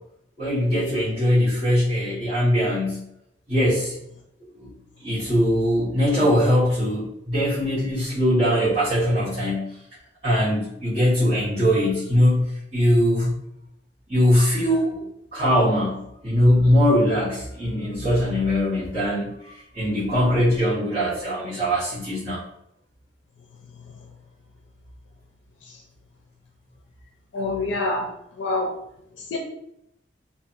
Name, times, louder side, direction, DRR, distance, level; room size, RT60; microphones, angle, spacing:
voice 1, 0.4-3.0 3.5-3.9 4.6-4.7 5.0-9.7 10.2-13.4 14.1-15.0 15.3-22.4, equal, 35° right, -15 dB, 1.1 m, -21 dB
voice 2, 27.3-28.1 28.4-28.7 29.3-29.4, left 2 dB, 90° left, 0 dB, 0.4 m, -25 dB
2.8 x 2.5 x 2.4 m, 0.79 s
head